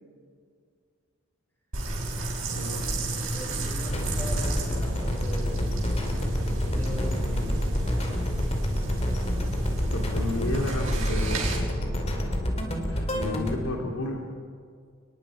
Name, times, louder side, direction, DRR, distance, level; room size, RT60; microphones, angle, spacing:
sound 1, 1.7-11.6, right 1 dB, 65° right, 6.0 m, -31 dB
voice 1, 2.5-2.8 9.9-11.7 12.9-14.2, left 1 dB, 90° left, 0 dB, 2.8 m, -32 dB
voice 2, 3.3-6.3 6.6-7.7, equal, 10° left, -3 dB, 5.4 m, -40 dB
sound 2, 3.9-13.6, equal, 30° left, 2.6 m, -28 dB
30.0 x 20.5 x 4.9 m, 2.2 s
head